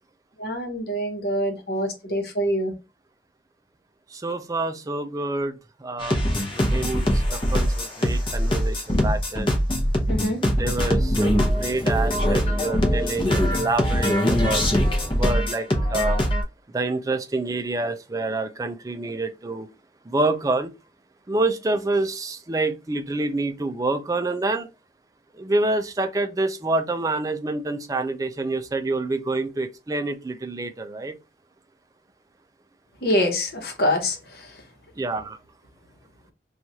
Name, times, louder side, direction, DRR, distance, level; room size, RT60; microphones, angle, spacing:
voice 1, 0.4-2.7 10.1-10.4 33.0-34.2, equal, 60° left, 1.0 m, -25 dB
voice 2, 4.1-6.2 6.5-9.5 10.6-14.6 15.1-16.2 16.7-19.7 20.1-20.7 21.3-24.7 25.3-31.2 35.0-35.4, right 2 dB, 20° right, 0.4 m, -27 dB
sound 1, 6.0-16.4, equal, 30° left, 0.8 m, -22 dB
3.0 x 2.4 x 3.9 m
head